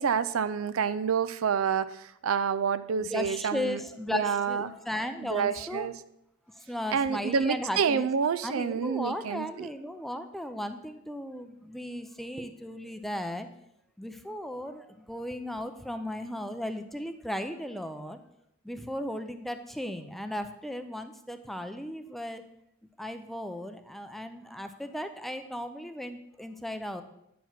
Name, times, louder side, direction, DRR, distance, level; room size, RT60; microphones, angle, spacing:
voice 1, 0.0-3.8 4.1-4.7 5.2-5.9 6.9-9.7, right 6 dB, 70° right, 14 dB, 0.4 m, -28 dB
voice 2, 3.0-5.9 6.6-8.1 8.4-13.5 14.0-18.2 18.6-22.4 23.0-27.0, left 1 dB, ahead, 8 dB, 0.5 m, -36 dB
9.1 x 4.7 x 5.8 m, 0.79 s
head